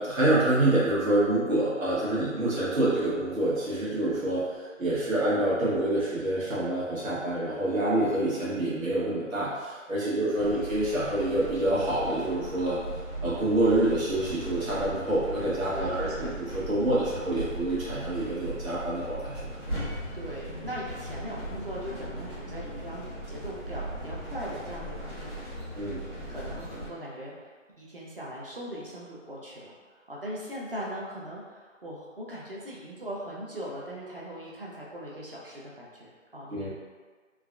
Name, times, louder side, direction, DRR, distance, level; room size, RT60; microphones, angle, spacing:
voice 1, 0.0-12.8 13.2-16.1 16.4-19.5 25.7-26.0 36.5-36.7, right 1 dB, 90° right, -9 dB, 1.1 m, -27 dB
sound 1, 10.4-26.9, right 1 dB, 20° right, 0.8 m, -38 dB
voice 2, 15.7-16.3 20.1-25.5 26.3-29.7 30.1-36.7, equal, 45° right, -5 dB, 0.5 m, -40 dB
3.3 x 2.3 x 2.3 m, 1.5 s
hypercardioid pair, 175°, 39 cm